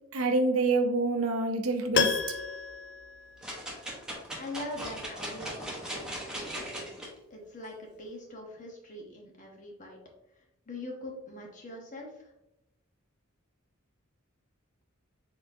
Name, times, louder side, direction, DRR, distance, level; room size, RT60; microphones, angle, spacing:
voice 1, 0.1-2.1, right 3 dB, 75° right, 6 dB, 0.6 m, -26 dB
Piano, 1.9-4.0 4.3-4.4, left 6 dB, 55° left, 0.5 m, -31 dB
sound 1, 3.4-7.1 7.6-7.7, right 1 dB, 5° right, 1.0 m, -39 dB
voice 2, 4.4-10.0 10.7-12.3, left 1 dB, 40° left, 0 dB, 1.1 m, -43 dB
4.2 x 4.0 x 2.6 m, 0.89 s
head